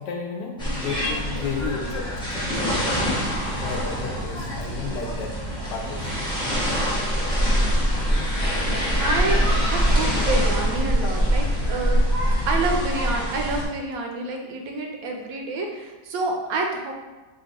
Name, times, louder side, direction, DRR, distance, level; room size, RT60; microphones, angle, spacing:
voice 1, 0.0-3.1 3.6-5.3 5.7-6.3 11.0-11.1, left 5 dB, 75° left, 1 dB, 1.2 m, -33 dB
sound 1, 0.6-13.6, equal, 5° left, 0.3 m, -24 dB
voice 2, 8.0-8.3 9.0-12.0 12.5-16.9, right 3 dB, 70° right, 2 dB, 0.9 m, -28 dB
3.5 x 2.4 x 4.0 m, 1.2 s
omnidirectional pair, 1.9 m